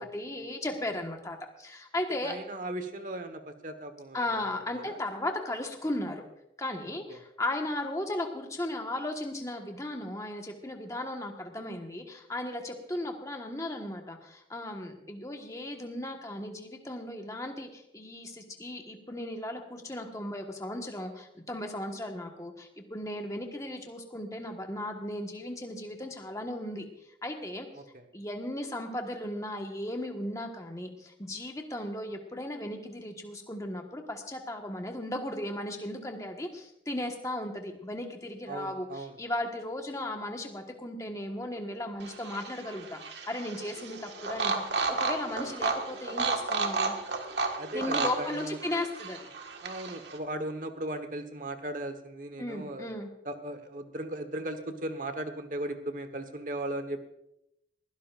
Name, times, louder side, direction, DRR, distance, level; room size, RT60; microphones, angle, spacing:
voice 1, 0.0-2.4 4.1-6.2 6.6-26.8 27.2-27.7 28.1-47.0 47.7-49.2 52.4-53.1, left 1 dB, 15° left, 3 dB, 1.4 m, -36 dB
voice 2, 2.2-5.0 7.1-7.2 27.8-28.0 38.5-39.2 47.6-48.6 49.6-52.9 53.2-57.1, right 1 dB, 45° right, 8 dB, 1.3 m, -37 dB
sound 1, 42.0-50.2, right 3 dB, 75° right, 1.7 m, -33 dB
21.0 x 16.0 x 2.5 m, 0.84 s
head